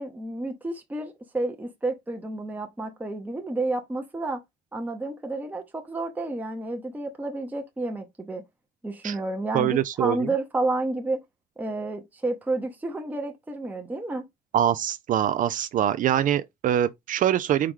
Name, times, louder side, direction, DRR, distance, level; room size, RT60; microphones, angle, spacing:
voice 1, 0.0-4.4 4.7-8.4 8.8-11.2 11.6-14.3, right 2 dB, 10° right, 0.8 m, -30 dB
voice 2, 9.5-10.3 14.5-17.7, right 10 dB, 50° right, 0.4 m, -24 dB
4.8 x 3.0 x 3.6 m
cardioid pair, 110°, 17 cm